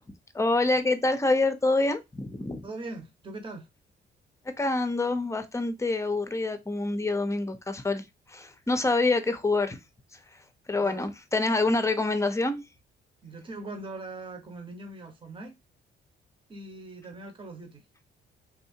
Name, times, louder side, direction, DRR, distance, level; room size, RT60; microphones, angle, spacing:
voice 1, 0.3-2.6 4.6-9.8 10.7-12.6, left 2 dB, 15° left, 0.7 m, -26 dB
voice 2, 2.6-3.7 10.8-11.1 13.2-15.6 16.5-17.8, right 2 dB, 25° right, 1.0 m, -41 dB
3.6 x 2.7 x 2.7 m
cardioid pair, 90°, 20 cm